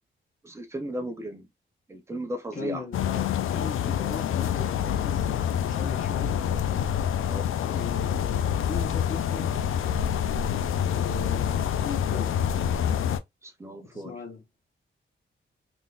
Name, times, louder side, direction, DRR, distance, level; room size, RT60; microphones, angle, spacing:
voice 1, 0.4-1.5 1.9-2.8 7.2-7.5 13.4-14.2, right 1 dB, 15° right, 0.6 m, -35 dB
voice 2, 2.5-6.4 7.7-9.5 10.8-12.3 13.8-14.4, left 4 dB, 40° left, 1.0 m, -38 dB
sound 1, 2.9-13.2, left 9 dB, 90° left, 0.4 m, -27 dB
3.8 x 2.5 x 2.4 m
wide cardioid pair, 175°, 21 cm